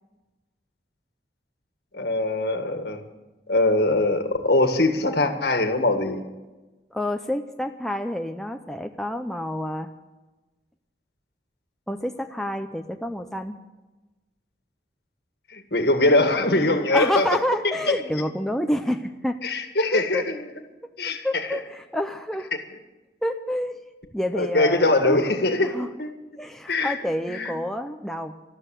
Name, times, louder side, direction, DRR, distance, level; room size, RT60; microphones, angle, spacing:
voice 1, 1.9-3.0 3.5-6.2 15.5-17.3 17.6-18.0 19.4-20.4 21.0-21.6 24.4-26.1 26.7-27.0 27.3-27.5, left 2 dB, 60° left, 7 dB, 1.8 m, -22 dB
voice 2, 6.9-9.9 11.9-13.6 16.9-19.4 19.8-20.2 21.2-22.5 23.2-23.8 24.1-25.3 25.6-25.9 26.4-28.4, left 1 dB, ahead, 5 dB, 0.6 m, -28 dB
13.5 x 12.5 x 7.6 m, 1.1 s
head